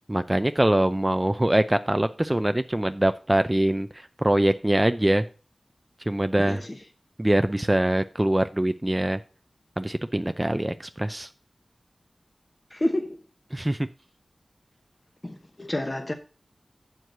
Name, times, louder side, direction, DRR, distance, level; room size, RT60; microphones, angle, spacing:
voice 1, 0.1-5.2 6.1-6.6 7.2-9.2 9.8-11.3 13.5-13.8, right 1 dB, 20° right, 0.5 m, -23 dB
voice 2, 6.4-6.7 12.7-13.2 15.2-16.1, left 1 dB, 30° left, 0.9 m, -29 dB
7.6 x 4.7 x 6.6 m
wide cardioid pair, 55°, 0 cm